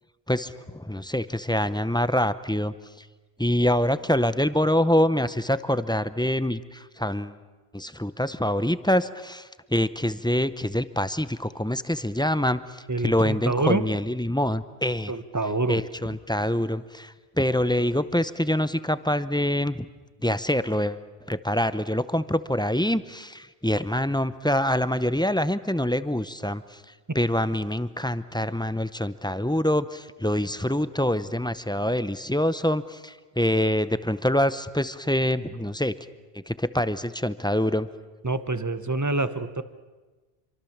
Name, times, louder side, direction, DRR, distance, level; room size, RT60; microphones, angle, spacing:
voice 1, 0.3-3.1 3.4-7.4 7.7-15.1 15.7-19.9 20.2-26.8 27.1-35.9 36.3-37.9, left 1 dB, 5° left, 13 dB, 0.5 m, -25 dB
voice 2, 12.9-13.8 15.1-15.8 27.1-27.2 38.2-39.6, right 2 dB, 20° right, 12 dB, 0.9 m, -26 dB
27.0 x 24.0 x 7.3 m, 1.3 s
omnidirectional pair, 1.1 m